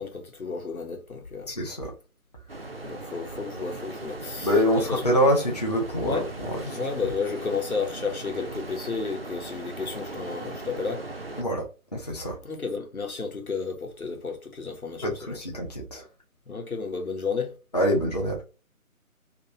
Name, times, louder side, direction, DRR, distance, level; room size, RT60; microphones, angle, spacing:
voice 1, 0.0-1.5 2.8-4.5 4.7-5.0 5.9-6.2 6.7-11.1 12.4-15.4 16.5-17.6, left 4 dB, 80° left, 1.3 m, -32 dB
voice 2, 1.5-1.9 4.4-7.1 11.4-12.4 15.0-16.1 17.7-18.4, equal, 30° left, 0.6 m, -26 dB
sound 1, 2.5-11.4, right 2 dB, 45° right, 0.4 m, -39 dB
3.2 x 2.9 x 2.8 m
figure-of-eight pair, 155°, 43 cm